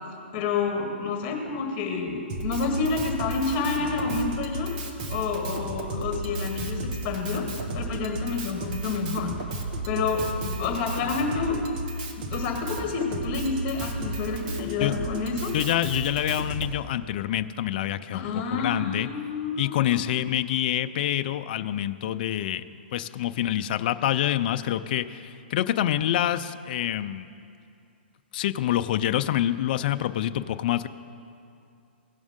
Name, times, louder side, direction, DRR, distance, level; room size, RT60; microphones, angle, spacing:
voice 1, 0.3-4.7 5.1-7.5 7.7-9.3 9.9-11.6 12.2-15.5 18.1-20.0, left 4 dB, 35° left, 2 dB, 1.8 m, -29 dB
Drum kit, 2.3-16.7, right 1 dB, 40° right, 1.3 m, -33 dB
voice 2, 15.5-19.1 19.6-22.6 22.9-27.3 28.3-30.9, left 12 dB, 50° left, 11 dB, 0.4 m, -26 dB
17.5 x 6.2 x 3.7 m, 2.5 s
hypercardioid pair, 140°, 6 cm